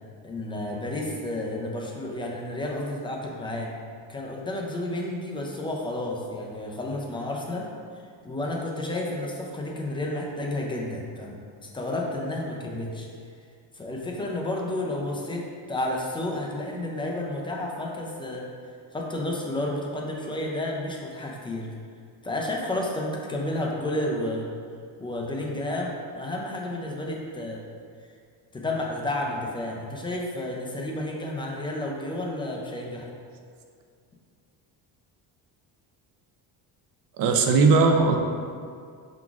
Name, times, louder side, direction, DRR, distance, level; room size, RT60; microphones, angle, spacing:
voice 1, 0.2-3.7 4.1-7.7 8.2-13.1 13.7-18.5 18.9-21.7 22.2-24.5 25.0-27.6 28.5-33.1, left 1 dB, 15° left, -1 dB, 0.3 m, -31 dB
voice 2, 37.2-38.2, right 4 dB, 55° right, 4 dB, 0.6 m, -18 dB
5.8 x 3.9 x 2.4 m, 2.2 s
cardioid pair, 145°, 41 cm